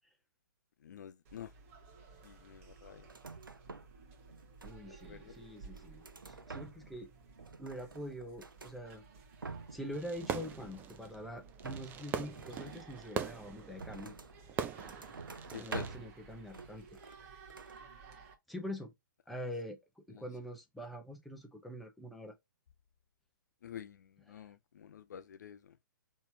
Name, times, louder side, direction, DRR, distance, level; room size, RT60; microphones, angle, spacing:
voice 1, 0.8-1.5 2.2-3.1 4.9-5.4 15.5-16.0 20.1-20.3 23.6-25.8, left 8 dB, 60° left, 0.5 m, -48 dB
sound 1, 1.2-18.3, right 5 dB, 40° right, 1.1 m, -56 dB
sound 2, 3.0-4.0 4.3-5.1 5.6-7.0 7.3-8.8 9.2-9.9 10.2-11.1 11.6-14.4 14.8-16.2 16.5-17.2 17.5-17.8, right 4 dB, 80° right, 0.6 m, -48 dB
voice 2, 4.6-7.1 7.6-9.0 9.7-14.2 15.6-16.9 18.5-18.9 19.3-19.8 20.1-22.3 24.3-24.4, equal, ahead, 0.8 m, -44 dB
Fireworks, 9.9-15.9, right 7 dB, 15° right, 0.4 m, -42 dB
4.1 x 3.1 x 2.7 m
figure-of-eight pair, 120°, 11 cm